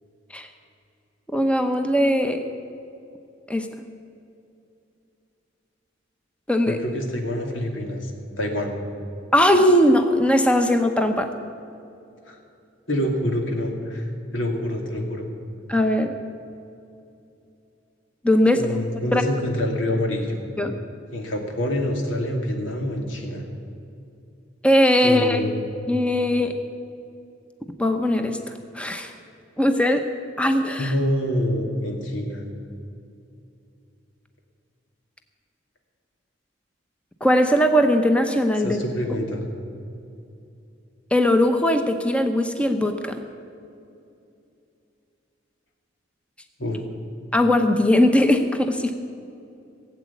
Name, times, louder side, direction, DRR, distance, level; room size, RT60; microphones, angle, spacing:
voice 1, 1.3-2.4 3.5-3.7 6.5-6.8 9.3-11.3 15.7-16.1 18.2-18.8 19.1-19.2 20.6-20.7 24.6-25.4 25.9-26.5 27.8-29.1 29.6-30.1 30.4-30.9 37.2-38.8 41.1-43.2 47.3-48.9, left 1 dB, 5° left, 6 dB, 0.8 m, -19 dB
voice 2, 6.7-8.1 8.4-8.7 12.3-12.4 12.9-14.0 14.3-15.3 18.4-20.4 21.1-23.4 25.0-25.7 30.8-32.4 38.6-39.4 46.6-46.8, left 1 dB, 90° left, 2 dB, 2.4 m, -26 dB
17.0 x 8.2 x 8.5 m, 2.6 s
head